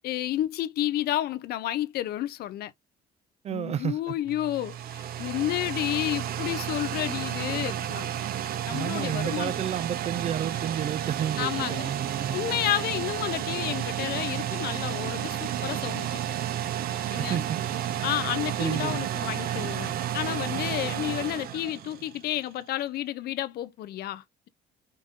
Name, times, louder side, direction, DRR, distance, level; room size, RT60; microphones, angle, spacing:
voice 1, 0.0-2.7 3.5-8.1 8.7-9.5 11.4-11.9 12.3-16.2 17.1-17.4 18.0-24.5, left 13 dB, 70° left, 0.6 m, -31 dB
voice 2, 3.4-4.1 8.7-12.4 17.2-17.6 18.6-19.1, right 9 dB, 40° right, 0.4 m, -31 dB
sound 1, 4.3-22.4, right 10 dB, 65° right, 0.8 m, -32 dB
5.3 x 2.7 x 3.7 m
cardioid pair, 110°, 17 cm